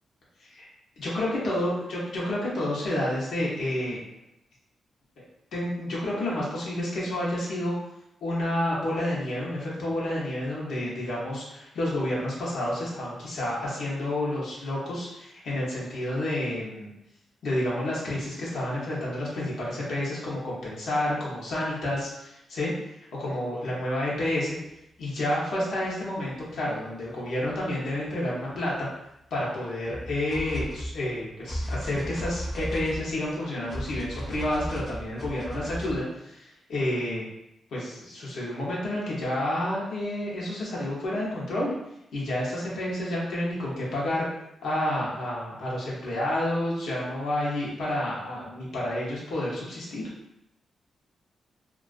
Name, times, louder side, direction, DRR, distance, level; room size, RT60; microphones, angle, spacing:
voice 1, 0.4-4.0 5.5-7.7 8.2-16.9 17.4-22.7 23.1-24.6 25.0-28.9 29.3-37.2 37.7-41.7 42.1-44.3 44.6-50.0, left 1 dB, 80° left, -6 dB, 0.7 m, -30 dB
sound 1, 25.8-25.9 27.5-27.6 28.1-28.2 29.8-36.0, equal, 25° left, 0.5 m, -36 dB
2.3 x 2.2 x 2.4 m, 0.83 s
wide cardioid pair, 150°, 0 cm